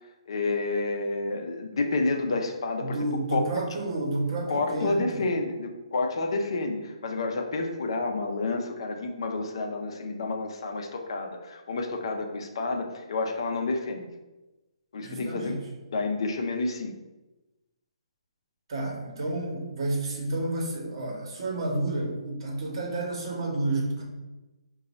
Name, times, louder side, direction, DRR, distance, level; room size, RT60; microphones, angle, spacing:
voice 1, 0.3-3.0 3.3-3.4 4.5-14.1 14.9-15.5 15.9-17.0, left 3 dB, 55° left, 4 dB, 0.5 m, -29 dB
voice 2, 2.8-5.3 15.0-15.7 18.7-24.0, right 2 dB, 50° right, -1 dB, 1.0 m, -30 dB
3.7 x 2.3 x 4.0 m, 1.1 s
figure-of-eight pair, 130°, 3 cm